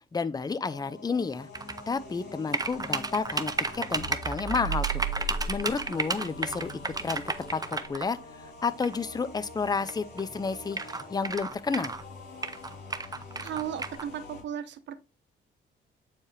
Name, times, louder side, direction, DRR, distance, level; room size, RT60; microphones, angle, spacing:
voice 1, 0.1-1.5 1.9-5.0 5.5-7.2 7.5-8.2 8.6-11.9, left 4 dB, 20° left, 0.6 m, -31 dB
sound 1, 0.7-14.4, left 3 dB, 50° left, 3.9 m, -46 dB
sound 2, 1.5-1.8 2.5-8.1 8.8-9.0 9.9-10.0 10.2-10.3 10.7-12.0 12.4-14.0, right 3 dB, 20° right, 0.7 m, -32 dB
sound 3, 4.0-8.5, right 5 dB, 45° right, 1.9 m, -36 dB
voice 2, 13.4-15.0, right 9 dB, 65° right, 1.0 m, -35 dB
8.6 x 4.7 x 3.3 m
cardioid pair, 90°, 20 cm